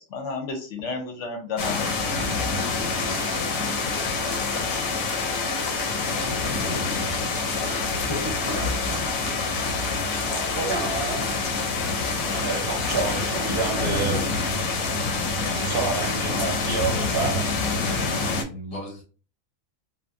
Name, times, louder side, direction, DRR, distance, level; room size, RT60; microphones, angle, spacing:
voice 1, 0.0-2.2 6.6-6.9, left 4 dB, 65° left, 5 dB, 0.9 m, -33 dB
sound 1, 1.6-18.4, left 3 dB, 90° left, 1.1 m, -26 dB
voice 2, 8.1-9.4 18.5-19.0, equal, 30° left, 0 dB, 0.8 m, -35 dB
voice 3, 10.2-11.4 12.3-14.3 15.5-17.5 17.9-18.2, right 4 dB, 50° right, -2 dB, 0.8 m, -29 dB
2.8 x 2.2 x 2.4 m, 0.38 s
omnidirectional pair, 1.4 m